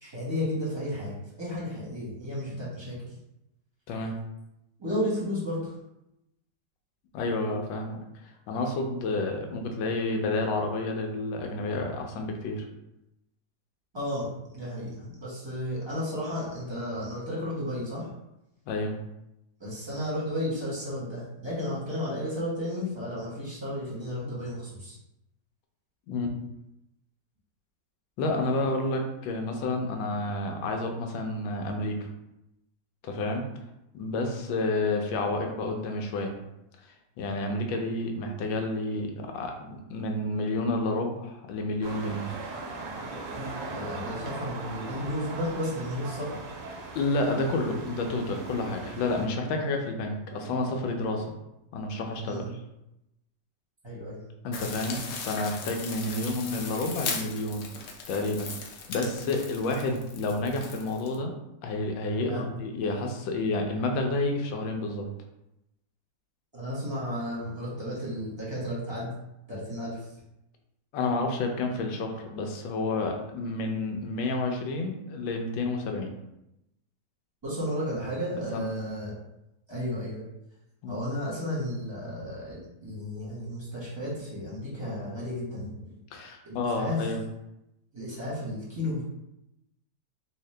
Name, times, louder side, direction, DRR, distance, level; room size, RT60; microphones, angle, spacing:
voice 1, 0.0-3.0 4.8-5.7 13.9-14.3 14.5-18.1 19.6-25.0 43.4-46.4 52.2-52.5 53.8-54.2 62.2-62.6 66.5-69.1 69.5-70.1 77.4-79.1 79.7-80.2 80.9-85.7 86.4-87.1 87.9-89.0, equal, 20° right, -7 dB, 1.0 m, -33 dB
voice 2, 3.9-4.2 7.1-8.0 8.5-12.7 18.7-19.0 26.1-26.3 28.2-32.1 33.0-33.4 33.9-36.4 37.2-42.2 46.9-51.4 51.7-52.6 54.4-57.7 58.1-61.3 61.6-65.1 70.9-76.1 78.5-78.7 80.8-81.1 86.1-87.2, left 2 dB, 85° left, 3 dB, 1.3 m, -30 dB
sound 1, 41.8-49.3, right 3 dB, 85° right, 1.4 m, -39 dB
sound 2, 54.5-61.1, left 5 dB, 70° left, 0.8 m, -38 dB
3.4 x 2.8 x 3.2 m, 0.88 s
omnidirectional pair, 2.0 m